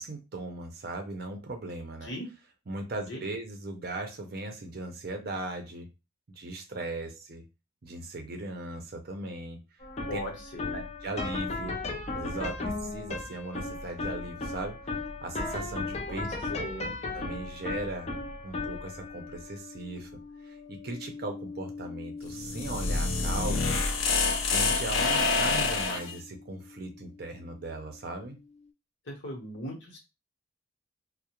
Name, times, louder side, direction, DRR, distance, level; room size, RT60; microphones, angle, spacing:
voice 1, 0.0-2.1 2.7-5.9 6.4-7.4 7.8-9.6 10.1-10.2 10.7-11.8 12.1-14.8 15.2-16.3 16.6-16.7 17.1-18.1 18.4-20.1 20.4-23.8 24.5-28.4, right 2 dB, 50° right, 5 dB, 0.5 m, -38 dB
sound 1, 9.8-27.0, left 3 dB, 30° left, 0.4 m, -37 dB
voice 2, 10.1-10.8 16.1-16.2 16.5-16.9 29.1-30.0, equal, 60° left, 0 dB, 0.9 m, -38 dB
sound 2, 22.3-26.1, left 3 dB, 90° left, 0.5 m, -27 dB
2.3 x 2.0 x 2.9 m, 0.27 s
head